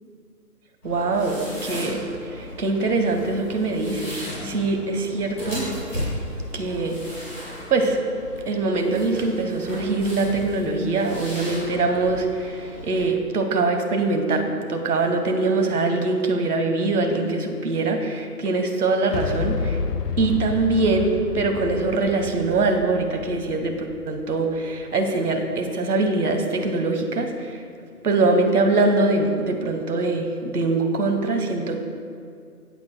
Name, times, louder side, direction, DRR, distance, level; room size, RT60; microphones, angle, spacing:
sound 1, 0.8-13.0, left 1 dB, 10° left, 2.4 m, -35 dB
voice 1, 0.8-5.7 6.5-7.0 7.7-8.0 8.5-19.8 20.2-27.5 28.0-31.8, right 3 dB, 70° right, 5 dB, 1.3 m, -23 dB
Boom, 19.1-25.0, left 5 dB, 80° left, 0.7 m, -30 dB
17.0 x 8.1 x 2.2 m, 2.2 s
hypercardioid pair, 180°, 47 cm